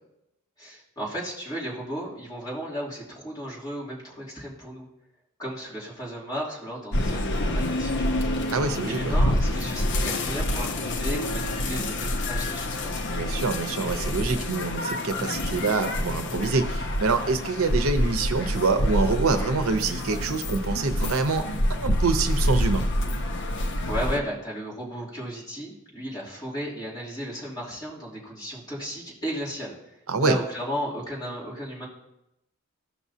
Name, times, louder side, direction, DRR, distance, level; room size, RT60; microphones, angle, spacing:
voice 1, 0.6-4.9 5.4-8.5 8.8-13.0 23.9-29.7 30.2-31.9, equal, 20° left, -7 dB, 2.9 m, -34 dB
sound 1, 6.9-24.2, left 1 dB, 55° left, 0.7 m, -27 dB
voice 2, 8.5-9.1 13.1-22.8 30.1-30.4, right 4 dB, 75° right, 8 dB, 0.8 m, -26 dB
15.0 x 6.2 x 2.8 m, 0.85 s
head